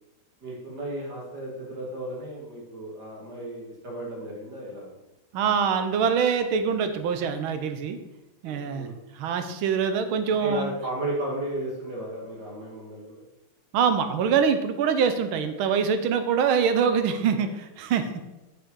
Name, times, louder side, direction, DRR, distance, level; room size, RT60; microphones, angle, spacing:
voice 1, 0.4-4.9 8.4-9.0 10.3-13.2, right 1 dB, 50° right, -3 dB, 2.6 m, -34 dB
voice 2, 5.3-8.0 8.4-8.9 9.1-10.7 13.7-18.2, right 6 dB, 75° right, 8 dB, 1.5 m, -24 dB
6.2 x 5.8 x 5.5 m, 1.0 s
omnidirectional pair, 2.4 m